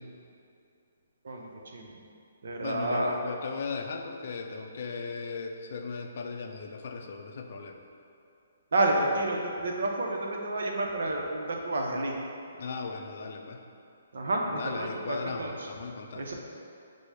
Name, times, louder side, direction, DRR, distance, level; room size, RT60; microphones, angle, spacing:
voice 1, 1.2-1.9 2.4-3.1 8.7-12.1 14.1-15.5 16.2-16.3, right 2 dB, 65° right, 0 dB, 0.6 m, -30 dB
voice 2, 2.6-7.8 12.6-13.6 14.5-16.3, left 4 dB, 55° left, 3 dB, 0.4 m, -37 dB
5.1 x 2.0 x 4.7 m, 2.6 s
figure-of-eight pair, 135°, 0 cm